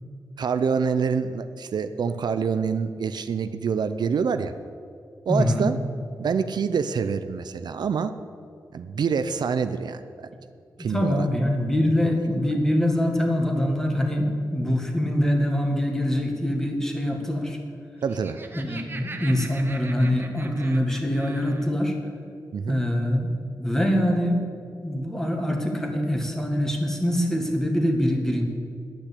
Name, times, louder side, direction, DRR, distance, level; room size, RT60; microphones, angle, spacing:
voice 1, 0.4-4.5 5.3-5.8 6.2-8.1 8.7-10.3 10.8-11.3 11.8-11.9 18.0-18.4 22.5-22.8, right 6 dB, 70° right, 10 dB, 0.5 m, -26 dB
voice 2, 5.3-5.7 10.8-17.6 18.5-22.0 22.7-23.3 23.6-24.4 24.8-28.4, equal, 5° left, 2 dB, 1.7 m, -24 dB
Laughter, 17.9-21.7, right 3 dB, 30° right, 0.9 m, -41 dB
10.0 x 9.0 x 8.3 m, 2.4 s
wide cardioid pair, 135°, 7 cm